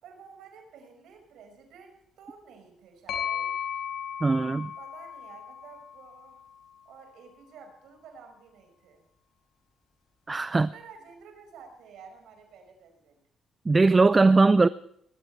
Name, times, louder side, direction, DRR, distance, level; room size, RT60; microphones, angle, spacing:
voice 1, 0.0-3.5 4.8-6.4 6.9-9.0 10.5-13.2, right 6 dB, 80° right, 5.2 m, -50 dB
sound 1, 3.1-6.8, left 8 dB, 75° left, 5.1 m, -36 dB
voice 2, 4.2-4.7 10.3-10.7 13.7-14.7, right 3 dB, 25° right, 0.5 m, -20 dB
20.0 x 13.5 x 3.3 m
cardioid pair, 90°, 0 cm